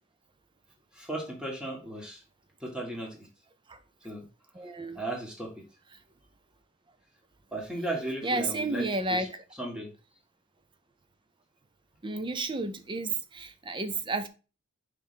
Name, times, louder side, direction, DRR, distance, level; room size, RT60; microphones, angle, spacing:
voice 1, 0.9-2.2 2.6-3.3 4.0-4.2 4.9-5.5 7.5-8.8 9.1-9.3 9.6-9.9, right 1 dB, 5° right, 1.6 m, -35 dB
voice 2, 4.5-5.0 8.2-9.4 12.0-14.3, right 2 dB, 20° right, 0.6 m, -31 dB
5.3 x 3.3 x 5.6 m
head